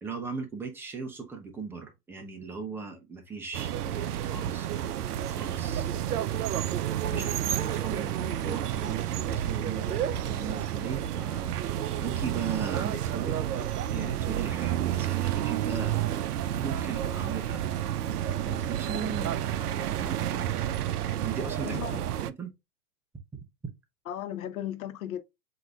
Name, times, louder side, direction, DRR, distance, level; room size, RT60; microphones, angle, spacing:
voice 1, 0.0-4.9 5.3-5.9 7.0-11.5 12.0-16.1 16.5-17.6 18.4-20.5 21.2-21.8 22.2-22.5, right 5 dB, 5° right, 0.5 m, -38 dB
sound 1, 3.5-22.3, right 11 dB, 70° right, 0.6 m, -30 dB
voice 2, 7.1-7.4 21.6-22.0 24.1-25.2, left 10 dB, 60° left, 1.1 m, -36 dB
7.6 x 2.7 x 2.3 m
hypercardioid pair, 120°, 48 cm